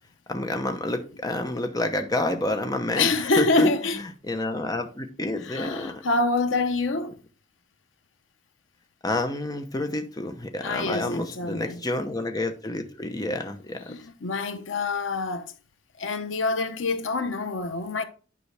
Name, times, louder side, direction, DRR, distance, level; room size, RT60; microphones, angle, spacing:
voice 1, 0.3-3.1 3.4-3.7 4.2-6.0 9.0-13.9, left 2 dB, 20° left, 0.8 m, -29 dB
voice 2, 3.0-4.0 5.4-7.1 10.6-11.8 13.9-15.5 16.0-18.0, left 3 dB, 85° left, 0.9 m, -26 dB
9.7 x 5.3 x 3.4 m
head